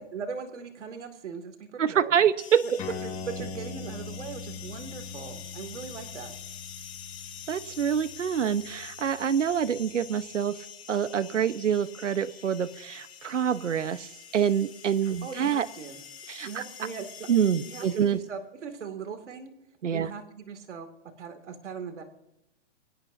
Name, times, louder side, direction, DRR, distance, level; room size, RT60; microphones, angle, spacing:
voice 1, 0.0-2.2 3.0-6.3 15.0-16.0 16.4-17.1 17.6-19.5 19.9-20.9 21.2-22.0, right 6 dB, 75° right, 7 dB, 2.6 m, -40 dB
voice 2, 1.8-2.8 7.5-10.6 10.9-15.7 16.3-16.6 17.3-18.2 19.8-20.1, right 8 dB, 90° right, 14 dB, 1.1 m, -26 dB
sound 1, 2.4-18.3, left 8 dB, 60° left, 5.4 m, -46 dB
sound 2, 2.8-9.7, left 5 dB, 20° left, 4.3 m, -42 dB
24.0 x 18.0 x 2.7 m, 0.90 s
hypercardioid pair, 145°, 36 cm